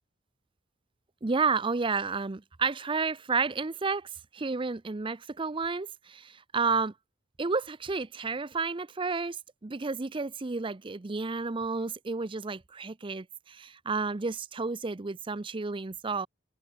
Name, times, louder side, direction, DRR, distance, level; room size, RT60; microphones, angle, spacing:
voice 1, 1.2-6.9 7.4-16.3, right 4 dB, 25° right, 0.5 m, -31 dB
head